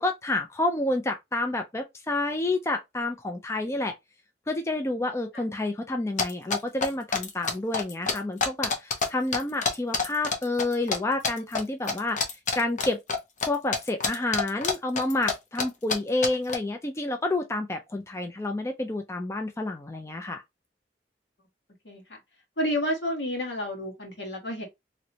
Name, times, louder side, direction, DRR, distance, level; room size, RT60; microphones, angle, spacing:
voice 1, 0.0-3.9 4.5-12.2 12.5-13.0 13.4-20.4, left 2 dB, 15° left, 0.4 m, -29 dB
sound 1, 6.2-9.1 9.3-11.0 11.2-11.6 11.9-13.5 13.7-15.3 15.6-15.7 15.9-16.5, left 4 dB, 45° left, 0.8 m, -26 dB
voice 2, 22.6-24.7, equal, 80° left, 1.5 m, -30 dB
3.0 x 3.0 x 2.7 m
head